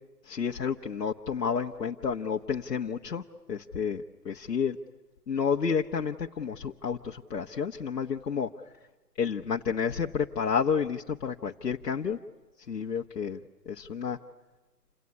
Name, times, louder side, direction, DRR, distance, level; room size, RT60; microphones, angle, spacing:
voice 1, 0.3-3.2 3.5-4.8 5.3-8.5 9.2-12.2 12.7-13.4 13.6-14.2, left 6 dB, 80° left, 1 dB, 1.3 m, -30 dB
28.5 x 18.0 x 9.9 m, 1.2 s
hypercardioid pair, 150°, 47 cm